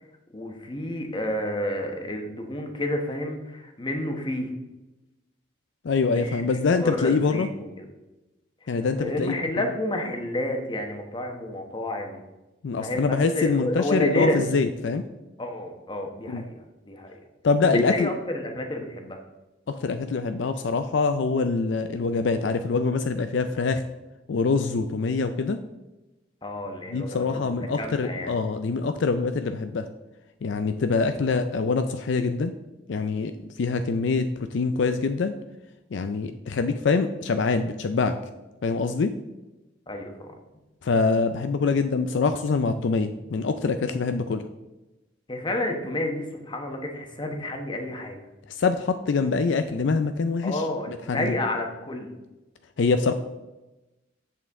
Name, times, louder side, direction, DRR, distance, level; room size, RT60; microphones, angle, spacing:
voice 1, 0.3-4.5 6.1-6.4 6.7-7.9 8.6-12.2 12.8-14.5 15.4-16.6 16.9-17.2 17.7-19.2 26.4-28.3 39.9-40.3 45.3-48.3 50.4-52.1, left 1 dB, 25° left, 3 dB, 1.0 m, -30 dB
voice 2, 5.8-7.5 8.7-9.3 12.6-15.0 16.3-16.4 17.4-18.1 19.7-23.8 24.3-25.6 26.9-29.9 30.4-32.5 32.9-33.3 33.6-35.3 35.9-38.1 38.6-39.1 40.8-44.4 48.5-51.3 52.8-53.1, left 4 dB, 65° left, 9 dB, 0.4 m, -24 dB
8.3 x 7.1 x 3.6 m, 1.0 s
head